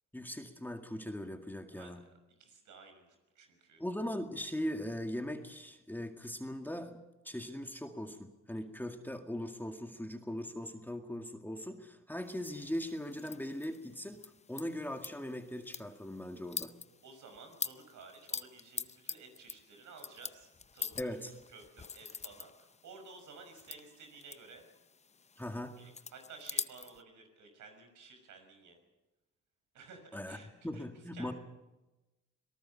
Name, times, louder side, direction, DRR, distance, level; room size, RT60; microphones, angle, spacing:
voice 1, 0.1-2.0 3.8-7.0 7.2-14.2 14.5-16.7 21.0-21.3 25.4-25.8 30.1-30.4 30.6-31.3, left 1 dB, 5° left, 5 dB, 2.0 m, -40 dB
voice 2, 1.7-2.1 2.4-3.8 17.0-21.0 21.5-24.7 25.8-28.8 29.7-31.3, right 4 dB, 75° right, 6 dB, 6.1 m, -54 dB
sound 1, 12.2-27.0, left 5 dB, 20° left, 0.6 m, -45 dB
26.0 x 18.5 x 5.7 m, 1.0 s
cardioid pair, 90°, 30 cm